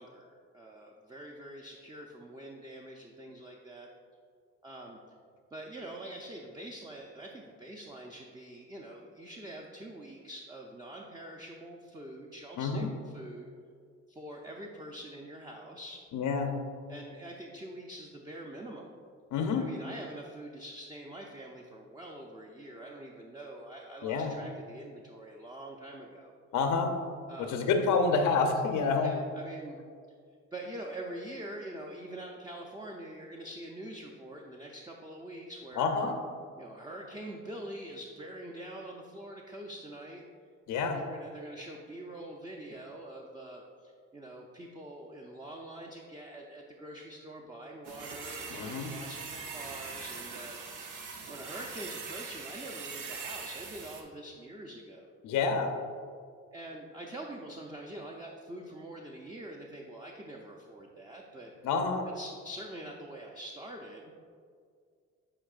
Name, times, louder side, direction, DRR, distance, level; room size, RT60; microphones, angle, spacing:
voice 1, 0.0-3.9 4.6-5.0 5.5-13.5 14.1-16.0 16.9-18.9 19.6-26.3 27.3-27.7 29.0-29.8 30.5-36.0 36.6-40.2 40.8-50.6 51.3-55.1 56.5-61.5 62.2-64.1, right 1 dB, 15° right, 0 dB, 0.5 m, -45 dB
voice 2, 12.6-12.9 16.1-16.5 19.3-19.7 24.0-24.4 26.5-26.9 27.4-29.1 35.8-36.2 40.7-41.0 48.5-48.9 55.2-55.7 61.6-62.1, left 4 dB, 85° left, 5 dB, 0.7 m, -28 dB
sound 1, 47.8-54.0, right 5 dB, 85° right, 0.8 m, -42 dB
8.8 x 4.5 x 2.4 m, 2.1 s
cardioid pair, 90°, 30 cm